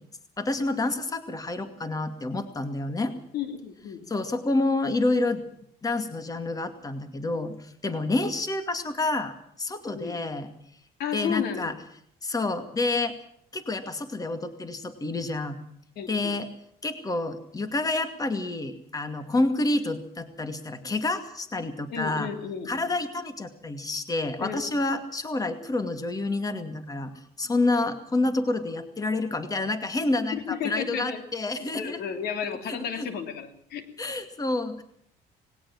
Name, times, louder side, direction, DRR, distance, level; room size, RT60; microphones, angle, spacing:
voice 1, 0.4-3.1 4.1-5.4 5.8-10.5 11.1-11.7 12.2-13.1 13.5-15.6 16.1-16.5 16.8-22.3 22.7-27.1 27.4-32.0 32.7-33.1 34.0-34.8, left 2 dB, 20° left, 9 dB, 2.3 m, -28 dB
voice 2, 3.3-4.0 9.9-10.2 11.0-11.7 15.9-16.4 21.9-22.9 24.4-24.8 30.3-31.2 31.7-33.9, left 8 dB, 70° left, 8 dB, 3.2 m, -33 dB
20.0 x 18.0 x 7.3 m, 0.65 s
cardioid pair, 110°, 17 cm